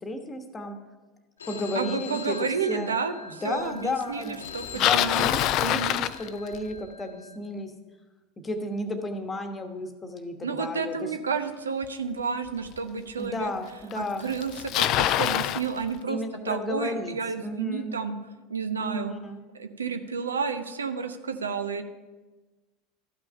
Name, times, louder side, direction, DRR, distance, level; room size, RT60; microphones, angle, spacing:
voice 1, 0.0-0.8 1.5-2.4 2.7-2.9 3.2-4.4 4.7-7.7 8.4-11.1 13.2-14.3 16.1-18.0 18.8-19.4, left 1 dB, 20° left, 7 dB, 1.2 m, -33 dB
Telephone, 1.4-7.4, left 5 dB, 75° left, 1.0 m, -43 dB
voice 2, 1.7-4.6 4.9-5.2 5.6-5.9 10.4-13.5 13.9-16.2 16.4-18.2 18.5-19.1 19.5-21.8, right 5 dB, 80° right, 9 dB, 0.5 m, -31 dB
Bicycle, 4.4-6.8 11.8-11.9 12.8-12.9 13.9-14.0 14.2-15.7, left 12 dB, 45° left, 0.4 m, -25 dB
13.0 x 6.1 x 5.4 m, 1.2 s
figure-of-eight pair, 80°, 0 cm